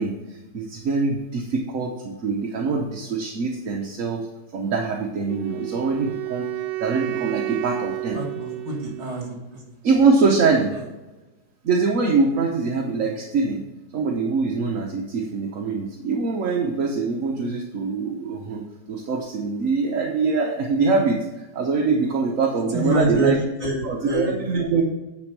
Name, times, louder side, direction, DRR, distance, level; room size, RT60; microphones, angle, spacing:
voice 1, 0.0-4.3 4.5-6.5 6.8-8.2 9.8-10.8 11.6-13.6 13.9-23.4 23.8-24.8, right 4 dB, 55° right, 0 dB, 1.2 m, -23 dB
Wind instrument woodwind instrument, 5.3-9.4, right 19 dB, 85° right, 1.3 m, -31 dB
voice 2, 8.1-9.3 22.7-23.3 23.6-24.3, right 1 dB, 40° right, 0 dB, 2.4 m, -25 dB
9.4 x 4.4 x 6.0 m, 1.1 s
omnidirectional pair, 1.9 m